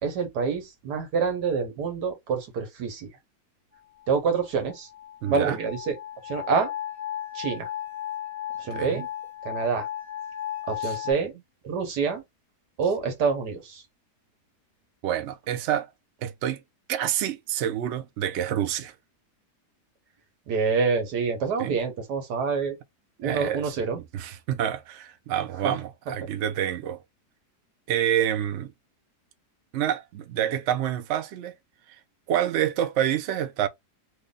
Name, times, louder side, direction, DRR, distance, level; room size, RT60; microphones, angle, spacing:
voice 1, 0.0-3.1 4.1-4.9 5.3-6.0 6.2-6.7 7.3-7.7 8.6-9.1 9.4-9.9 10.7-11.3 11.6-12.2 12.8-13.8 20.5-22.8 23.2-24.0 25.6-25.7 26.1-26.2, right 5 dB, 85° right, 1.5 m, -27 dB
sound 1, 4.0-11.1, left 11 dB, 5° right, 0.9 m, -35 dB
voice 2, 5.2-5.6 8.7-9.0 10.8-11.0 15.0-15.9 16.2-16.6 16.9-18.9 21.6-21.8 23.2-23.8 24.1-27.0 27.9-28.7 29.7-31.5 32.3-33.7, right 10 dB, 70° right, 0.7 m, -27 dB
3.1 x 2.3 x 3.7 m
omnidirectional pair, 1.7 m